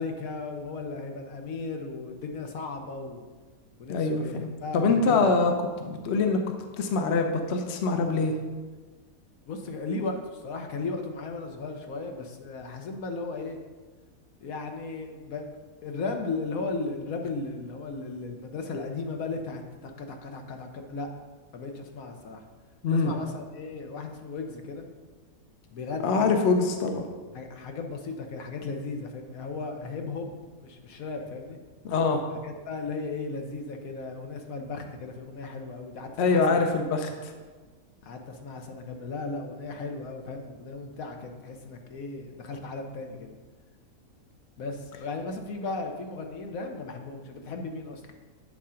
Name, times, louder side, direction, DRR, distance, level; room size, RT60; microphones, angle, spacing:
voice 1, 0.0-3.3 3.8-5.3 9.5-13.6 14.4-15.5 15.8-21.1 21.5-22.4 22.9-24.9 25.7-26.4 27.3-31.6 32.4-36.6 38.0-43.3 44.6-48.0, left 3 dB, 70° left, 4 dB, 1.2 m, -36 dB
voice 2, 3.9-5.5 5.8-6.4 6.8-8.3 22.8-23.1 26.0-27.0 31.8-32.2 36.2-37.3, left 4 dB, 55° left, 4 dB, 0.9 m, -24 dB
8.4 x 3.7 x 5.6 m, 1.4 s
omnidirectional pair, 1.5 m